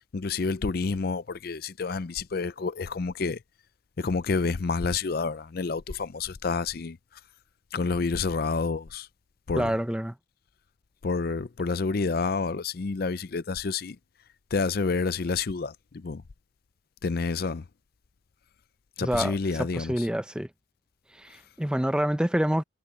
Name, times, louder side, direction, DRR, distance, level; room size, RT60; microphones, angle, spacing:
voice 1, 0.1-3.4 4.0-7.0 7.7-9.1 9.5-9.8 11.0-14.0 14.5-16.2 17.0-17.6 19.0-20.1, left 4 dB, 50° left, 0.5 m, -29 dB
voice 2, 9.6-10.1 19.0-20.5 21.2-22.6, equal, 5° right, 0.6 m, -27 dB
head